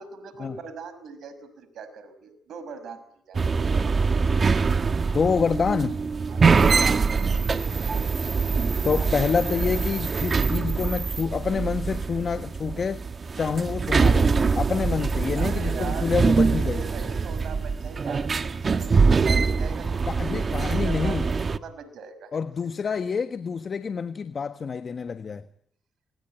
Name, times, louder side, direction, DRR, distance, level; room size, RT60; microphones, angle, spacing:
voice 1, 0.0-3.4 6.3-7.5 13.4-13.7 15.4-16.1 16.4-20.1 20.4-22.3, right 5 dB, 70° right, 5.8 m, -41 dB
sound 1, 3.3-21.6, right 4 dB, 45° right, 1.6 m, -24 dB
voice 2, 5.1-6.0 8.8-13.0 13.3-16.8 20.1-21.3 22.3-25.5, left 5 dB, 50° left, 1.3 m, -27 dB
27.5 x 21.5 x 9.0 m
supercardioid pair, 55°, 0 cm